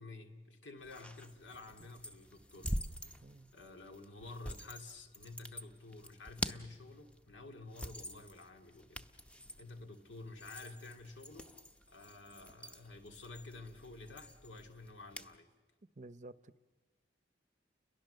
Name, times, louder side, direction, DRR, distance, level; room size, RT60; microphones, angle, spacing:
voice 1, 0.0-2.8 3.5-9.1 9.6-11.5 11.9-15.5, left 3 dB, 90° left, 4 dB, 2.3 m, -51 dB
sound 1, 0.8-15.4, equal, 5° left, 0.7 m, -46 dB
voice 2, 3.2-3.5 16.0-16.6, right 2 dB, 40° right, 14 dB, 0.7 m, -52 dB
30.0 x 22.5 x 6.6 m, 1.3 s
head